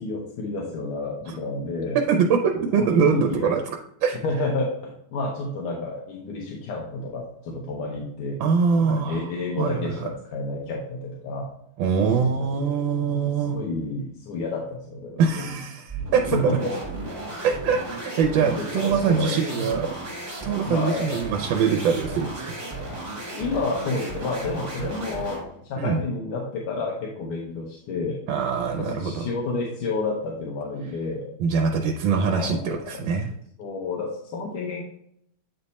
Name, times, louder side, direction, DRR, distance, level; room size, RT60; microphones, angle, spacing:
voice 1, 0.0-2.0 2.8-3.5 4.2-8.4 8.8-11.5 12.2-15.5 16.3-16.7 18.4-19.8 20.6-21.2 23.3-28.2 28.7-31.3 32.1-32.7 33.6-34.8, left 3 dB, 90° left, -2 dB, 1.8 m, -30 dB
voice 2, 1.9-3.6 4.0-4.2 8.4-9.3 9.6-10.1 11.8-13.6 15.2-16.6 17.4-19.9 20.4-22.5 25.8-26.0 28.3-29.2 31.4-33.3, right 6 dB, 75° right, 4 dB, 1.3 m, -23 dB
sound 1, 15.9-25.5, right 2 dB, 20° right, 1.4 m, -34 dB
8.6 x 3.4 x 4.1 m, 0.71 s
omnidirectional pair, 2.3 m